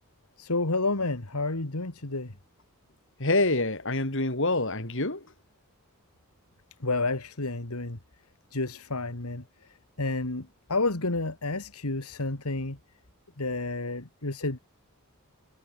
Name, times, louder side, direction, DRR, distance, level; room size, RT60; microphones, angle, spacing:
voice 1, 0.4-2.3 6.8-8.0 8.5-12.8 13.4-14.6, left 3 dB, 80° left, 2.3 m, -30 dB
voice 2, 3.2-5.2, left 2 dB, 60° left, 4.3 m, -26 dB
head